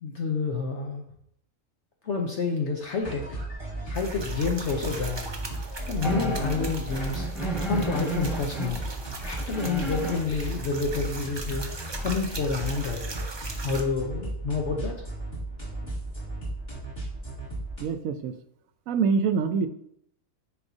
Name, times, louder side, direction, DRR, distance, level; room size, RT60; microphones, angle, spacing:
voice 1, 0.0-1.0 2.0-3.4 3.8-5.3 5.9-7.3 7.7-8.8 9.2-13.0 13.6-15.1, left 4 dB, 60° left, 2 dB, 1.0 m, -29 dB
sound 1, 3.0-17.8, right 2 dB, 30° left, 2.7 m, -35 dB
sound 2, 3.9-13.8, right 3 dB, 30° right, 0.5 m, -40 dB
sound 3, 6.0-8.7 9.2-10.2 13.1-13.2 13.8-14.0, right 1 dB, ahead, 1.1 m, -32 dB
voice 2, 17.8-18.3 18.9-19.7, right 5 dB, 75° right, 9 dB, 1.0 m, -25 dB
9.6 x 4.3 x 2.7 m, 0.72 s
omnidirectional pair, 1.4 m